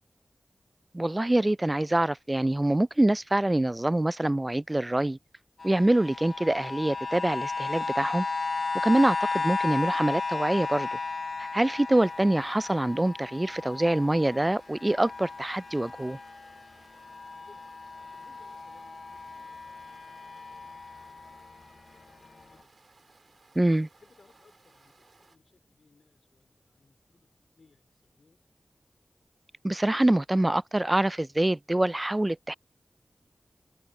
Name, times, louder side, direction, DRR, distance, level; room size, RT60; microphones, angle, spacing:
voice 1, 0.9-5.2 5.6-8.3 8.8-11.0 11.4-16.2 23.6-23.9 29.6-32.5, right 1 dB, 25° right, 0.3 m, -25 dB
sound 1, 5.6-16.6 17.0-21.6 22.2-22.3, left 4 dB, 65° left, 0.7 m, -34 dB
sound 2, 11.9-25.4, right 3 dB, 65° right, 2.4 m, -61 dB
voice 2, 17.4-17.7 18.1-22.8 23.9-28.4, left 4 dB, 85° left, 4.1 m, -65 dB
wide cardioid pair, 55°, 0 cm